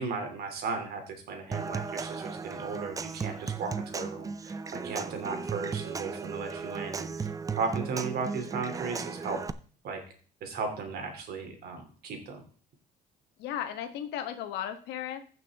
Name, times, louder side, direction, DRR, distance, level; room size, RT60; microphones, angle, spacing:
voice 1, 0.0-9.4 9.8-10.0 10.4-12.4, right 4 dB, 65° right, 4 dB, 2.7 m, -36 dB
Human voice / Acoustic guitar / Percussion, 1.5-9.5, right 5 dB, 20° right, 0.5 m, -36 dB
voice 2, 13.4-15.2, left 10 dB, 85° left, 9 dB, 1.2 m, -35 dB
15.0 x 6.1 x 3.4 m, 0.42 s
cardioid pair, 110°, 17 cm